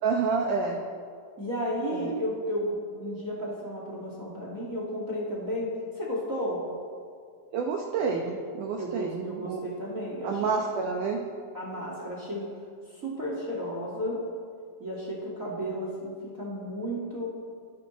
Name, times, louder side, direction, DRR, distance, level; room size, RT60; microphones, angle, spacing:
voice 1, 0.0-0.8 1.9-2.1 7.5-9.6 10.2-11.2, right 5 dB, 75° right, 2 dB, 1.9 m, -29 dB
voice 2, 1.4-6.7 8.8-10.4 11.5-12.5 12.9-14.3 14.8-17.3, equal, 30° right, -3 dB, 1.7 m, -33 dB
28.5 x 10.5 x 4.1 m, 2.2 s
omnidirectional pair, 5.1 m